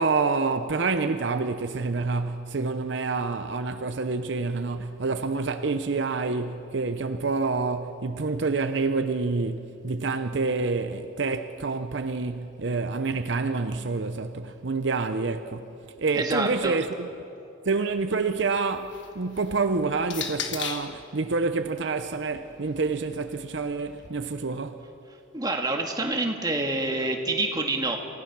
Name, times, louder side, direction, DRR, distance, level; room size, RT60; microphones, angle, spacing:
voice 1, 0.0-17.1 17.7-24.8, right 4 dB, 65° right, 0.6 m, -27 dB
voice 2, 16.1-16.8 25.3-28.0, right 2 dB, 20° right, 1.7 m, -27 dB
sound 1, 18.6-21.0 22.0-24.1, left 8 dB, 65° left, 1.4 m, -39 dB
28.0 x 16.0 x 6.0 m
head